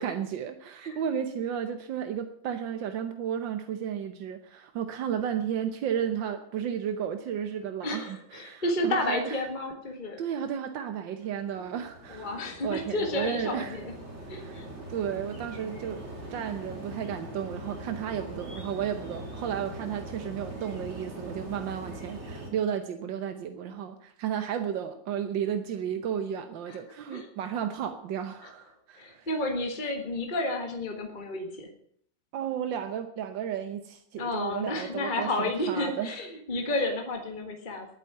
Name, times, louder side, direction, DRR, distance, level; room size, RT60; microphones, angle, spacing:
voice 1, 0.0-9.5 10.2-13.8 14.3-14.6 14.9-16.0 16.3-29.3 32.3-36.2, right 8 dB, 85° right, 8 dB, 1.7 m, -33 dB
voice 2, 7.8-10.2 12.1-13.9 14.3-14.6 26.7-26.8 27.1-27.3 29.0-31.7 34.1-37.9, left 1 dB, 25° left, 3 dB, 1.8 m, -31 dB
sound 1, 11.4-22.5, right 1 dB, 35° right, 3.5 m, -41 dB
11.0 x 9.5 x 9.1 m, 0.66 s
omnidirectional pair, 2.0 m